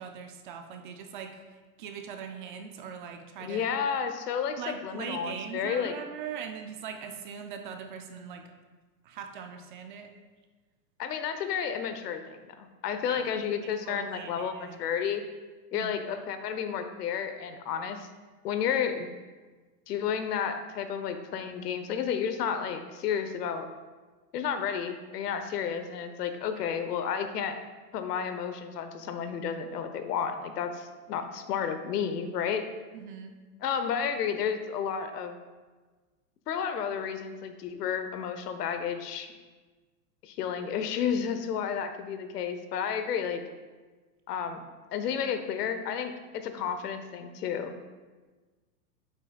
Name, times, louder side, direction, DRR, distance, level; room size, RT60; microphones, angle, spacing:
voice 1, 0.0-1.4 1.8-3.7 4.6-8.5 9.0-10.1 13.1-13.4 13.8-15.0 15.7-15.9 32.9-33.3, right 7 dB, 35° right, 5 dB, 0.4 m, -41 dB
voice 2, 3.4-5.9 11.0-15.2 15.7-18.1 18.4-19.1 19.9-23.7 24.3-27.6 27.9-32.7 33.6-35.3 36.5-39.3 40.2-43.4 44.3-44.6 44.9-47.7, left 7 dB, 85° left, 8 dB, 0.9 m, -31 dB
8.9 x 7.3 x 2.3 m, 1.3 s
supercardioid pair, 155°, 47 cm